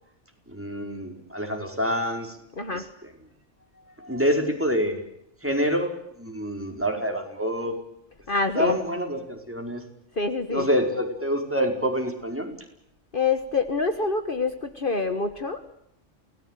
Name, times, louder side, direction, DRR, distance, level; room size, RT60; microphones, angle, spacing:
voice 1, 0.5-2.4 2.7-2.8 4.0-5.0 5.4-5.9 6.2-7.8 8.5-9.8 10.5-12.5, equal, 10° right, 3 dB, 5.0 m, -26 dB
voice 2, 2.6-2.9 8.3-8.8 10.1-10.7 13.1-15.6, left 4 dB, 45° left, 9 dB, 1.7 m, -26 dB
28.5 x 19.0 x 9.2 m, 0.78 s
omnidirectional pair, 1.2 m